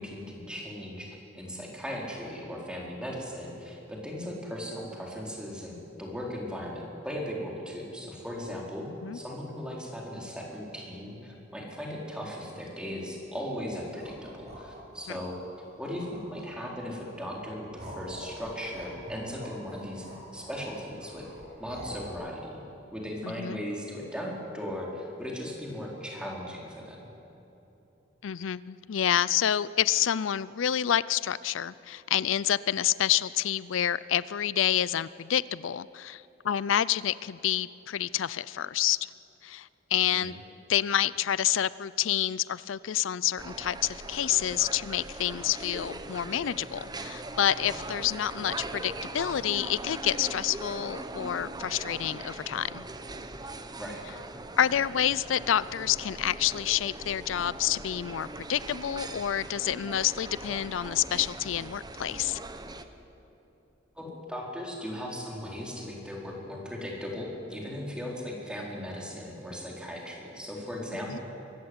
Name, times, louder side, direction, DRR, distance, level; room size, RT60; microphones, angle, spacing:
voice 1, 0.0-15.4 15.8-21.3 21.6-22.6 22.9-27.1 40.1-40.3 53.8-54.0 64.0-71.2, equal, 5° right, -2 dB, 4.2 m, -38 dB
sound 1, 13.8-16.8 17.3-22.1, equal, 40° right, 6.9 m, -46 dB
voice 2, 23.2-23.6 28.2-39.0 39.4-40.3 40.7-52.9 54.6-62.4 71.1-71.2, left 10 dB, 90° left, 19 dB, 0.4 m, -28 dB
sound 2, 43.4-62.8, right 2 dB, 20° right, 1.0 m, -41 dB
24.0 x 14.5 x 9.7 m, 3.0 s
head